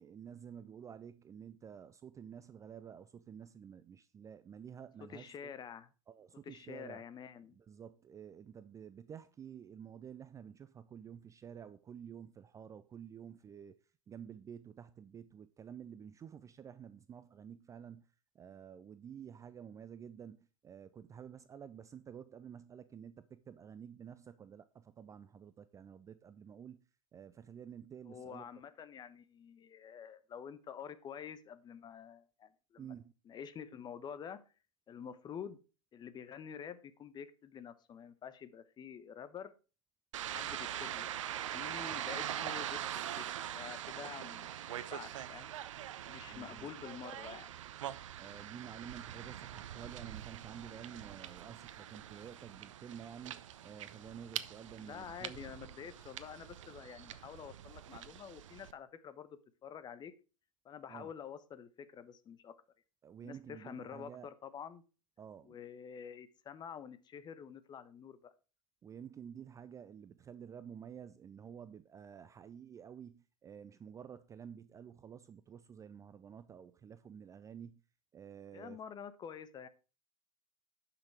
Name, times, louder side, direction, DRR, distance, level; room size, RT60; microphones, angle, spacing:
voice 1, 0.0-5.5 6.1-7.0 7.6-13.8 14.1-18.1 18.3-26.8 27.1-28.5 32.8-33.1 46.3-46.7 48.2-55.5 60.9-61.1 63.0-64.3 65.2-65.6 68.8-77.8 78.1-78.8, right 8 dB, 20° right, 0.5 m, -51 dB
voice 2, 5.1-5.9 6.4-7.6 28.1-32.9 33.3-34.4 34.9-35.6 35.9-39.5 40.2-41.1 41.5-45.5 46.1-47.6 54.8-60.1 60.6-62.5 63.2-64.8 65.4-68.3 78.5-79.7, left 8 dB, 25° left, 1.0 m, -48 dB
sound 1, 40.1-58.7, right 11 dB, 65° right, 0.8 m, -43 dB
10.5 x 6.0 x 4.6 m
figure-of-eight pair, 95°, 17 cm